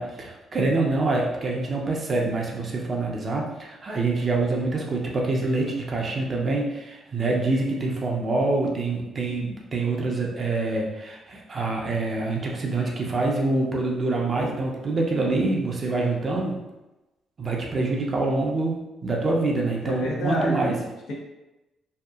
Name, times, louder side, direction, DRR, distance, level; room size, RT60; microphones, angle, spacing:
voice 1, 0.0-16.6 17.4-20.8, right 3 dB, 40° right, -1 dB, 0.6 m, -26 dB
voice 2, 19.8-21.1, left 1 dB, 75° left, -3 dB, 0.7 m, -29 dB
2.8 x 2.3 x 2.3 m, 1.0 s
cardioid pair, 90°, 0 cm